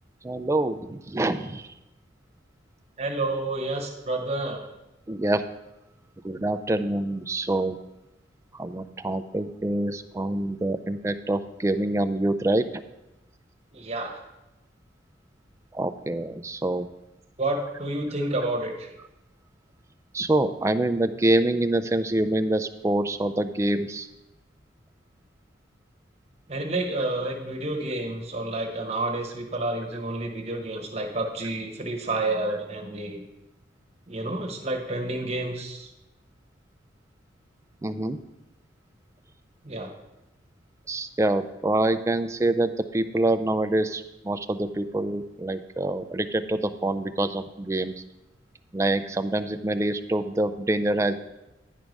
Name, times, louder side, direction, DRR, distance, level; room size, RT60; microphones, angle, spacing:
voice 1, 0.2-1.7 5.1-5.4 6.2-7.8 8.5-12.6 15.7-16.9 20.1-24.1 37.8-38.2 40.9-47.9 48.7-51.1, right 1 dB, 15° right, 9 dB, 0.3 m, -26 dB
voice 2, 3.0-4.6 13.7-14.2 17.4-18.9 26.5-33.2 34.1-35.9 39.6-39.9, right 2 dB, 35° right, 2 dB, 1.1 m, -29 dB
10.0 x 4.7 x 5.2 m, 0.96 s
head